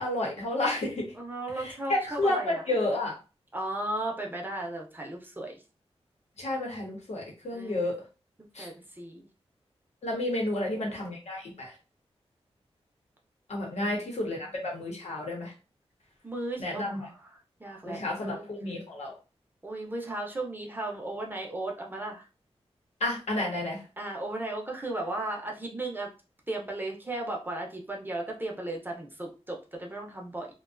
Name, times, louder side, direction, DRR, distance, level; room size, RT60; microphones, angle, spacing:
voice 1, 0.0-1.1 1.6-3.1 6.4-7.9 8.5-8.7 10.0-11.7 13.5-14.4 14.6-15.5 16.6-17.1 17.9-19.1 23.0-23.8, left 1 dB, 85° left, -1 dB, 0.9 m, -31 dB
voice 2, 1.1-2.6 3.5-5.6 7.5-8.0 8.6-9.3 10.5-11.1 13.8-14.0 14.3-14.6 16.2-18.5 19.6-22.3 24.0-26.1 26.5-30.5, right 2 dB, 20° right, 0 dB, 0.6 m, -36 dB
2.4 x 2.2 x 2.4 m, 0.33 s
wide cardioid pair, 95°, 11 cm